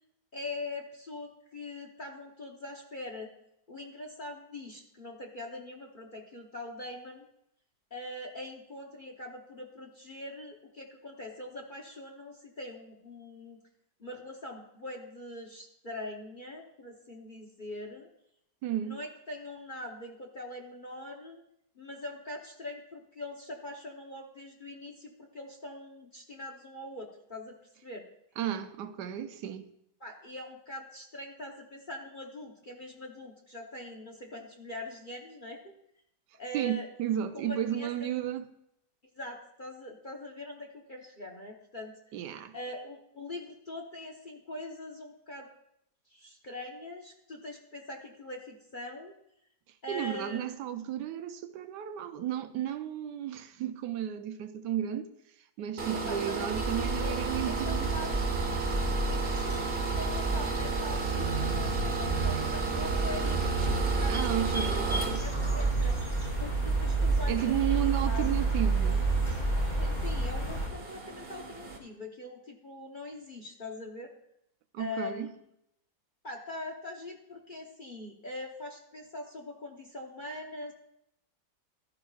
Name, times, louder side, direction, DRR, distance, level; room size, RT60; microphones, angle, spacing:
voice 1, 0.3-3.3 3.7-7.3 7.9-13.6 14.0-18.1 18.8-21.4 21.8-27.6 27.8-28.1 30.0-35.7 36.4-36.9 37.3-38.1 39.2-42.0 42.5-45.5 46.1-49.1 49.8-50.4 55.9-57.1 57.4-58.4 59.1-64.9 65.2-66.0 66.4-68.3 69.7-74.1 74.8-75.3 76.2-80.7, left 2 dB, 35° left, 0.9 m, -42 dB
voice 2, 18.6-19.0 28.4-29.7 36.5-38.5 42.1-42.5 49.9-55.1 55.6-57.9 64.1-65.2 67.3-69.1 74.7-75.3, right 10 dB, 75° right, 1.3 m, -33 dB
sound 1, 55.8-71.8, right 5 dB, 35° right, 1.5 m, -36 dB
sound 2, 56.5-70.7, right 3 dB, 15° left, 2.4 m, -30 dB
14.5 x 12.0 x 2.4 m
omnidirectional pair, 1.9 m